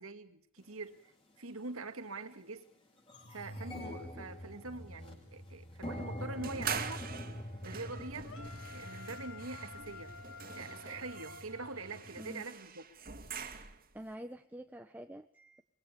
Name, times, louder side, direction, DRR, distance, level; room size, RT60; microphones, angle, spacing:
voice 1, 0.0-2.7 3.3-7.1 7.6-8.3 8.6-10.2 10.5-12.8, right 3 dB, 75° right, 2.1 m, -44 dB
sound 1, 0.7-0.8 1.6-1.8 2.2-2.3 2.6-12.3, left 1 dB, 25° left, 6.7 m, -45 dB
sound 2, 6.4-14.0, right 6 dB, 40° right, 2.5 m, -44 dB
sound 3, 8.2-12.3, left 4 dB, 65° left, 2.3 m, -51 dB
voice 2, 13.9-15.6, equal, 10° right, 0.9 m, -47 dB
24.5 x 22.5 x 6.8 m
head